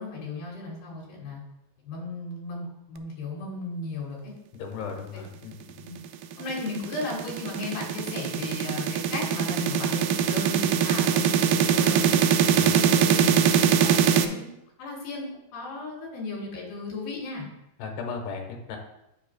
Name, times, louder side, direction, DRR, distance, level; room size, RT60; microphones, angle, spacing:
voice 1, 0.0-1.4 1.8-4.3 5.1-5.2 5.8-6.0 6.4-12.2 12.6-14.5 14.8-17.5, left 2 dB, 70° left, -2 dB, 4.3 m, -35 dB
voice 2, 4.5-5.9 12.5-12.7 17.8-18.8, left 5 dB, 85° left, 2 dB, 3.3 m, -36 dB
sound 1, 6.1-14.2, right 8 dB, 90° right, 1.9 m, -22 dB
9.5 x 7.9 x 2.3 m, 0.85 s
omnidirectional pair, 4.5 m